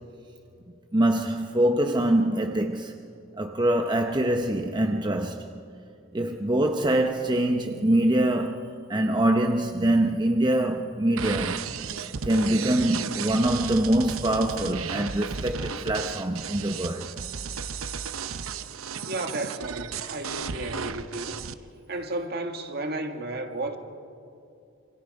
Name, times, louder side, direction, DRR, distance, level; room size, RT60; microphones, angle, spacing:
voice 1, 0.9-2.9 3.4-5.5 6.1-11.6 12.2-17.1, right 1 dB, 20° right, 0.8 m, -24 dB
sound 1, 11.2-21.5, right 6 dB, 85° right, 0.8 m, -34 dB
voice 2, 19.0-21.4 21.9-23.8, right 2 dB, 50° right, 1.8 m, -33 dB
27.5 x 26.0 x 5.4 m
head